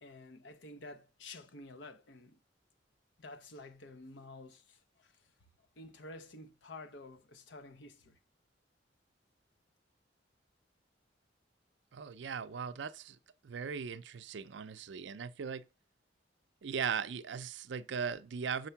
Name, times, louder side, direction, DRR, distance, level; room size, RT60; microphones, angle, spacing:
voice 1, 0.0-2.4 3.2-5.3 5.8-8.2, left 2 dB, 75° left, 0.8 m, -51 dB
voice 2, 11.9-13.2 13.4-15.6 16.6-18.7, right 6 dB, 70° right, 0.4 m, -38 dB
6.4 x 4.4 x 5.7 m
head